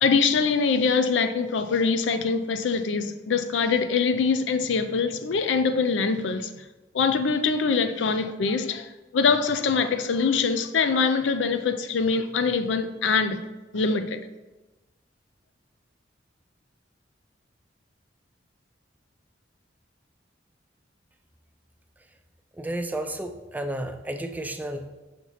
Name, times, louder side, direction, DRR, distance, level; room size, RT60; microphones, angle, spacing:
voice 1, 0.0-6.5 6.9-13.4 13.7-14.2, left 5 dB, 90° left, 0.4 m, -24 dB
voice 2, 22.5-24.9, right 1 dB, 10° right, 0.4 m, -32 dB
5.9 x 4.3 x 4.1 m
head